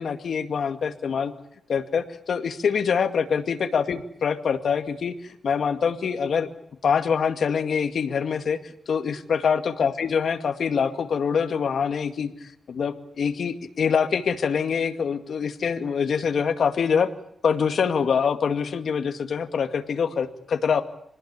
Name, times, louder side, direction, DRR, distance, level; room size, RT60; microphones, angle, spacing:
voice 1, 0.0-1.3 1.7-6.5 6.8-8.6 8.9-17.1 17.4-20.8, left 6 dB, 65° left, 7 dB, 2.3 m, -25 dB
27.0 x 19.5 x 8.6 m, 0.73 s
wide cardioid pair, 140°, 0 cm